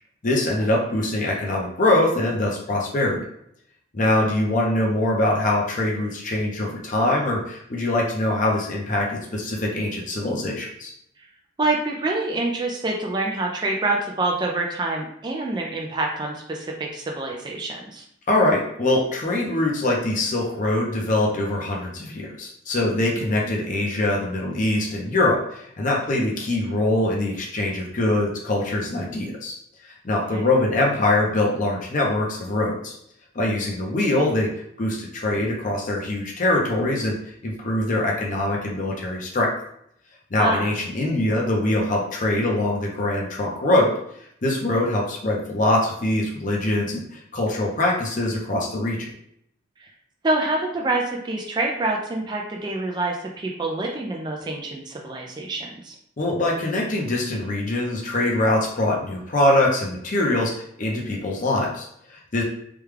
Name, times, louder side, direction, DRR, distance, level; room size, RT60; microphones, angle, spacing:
voice 1, 0.2-3.2 3.9-10.9 18.3-29.6 29.8-33.0 33.3-34.5 34.8-37.1 37.4-39.5 40.3-43.9 44.4-49.1 56.2-62.4, left 1 dB, 40° left, -2 dB, 0.6 m, -23 dB
voice 2, 11.6-18.0 23.3-23.5 30.3-30.5 40.4-40.6 49.8-49.9 50.2-56.0, right 2 dB, 20° right, 0 dB, 0.3 m, -26 dB
3.4 x 2.2 x 3.2 m, 0.72 s
head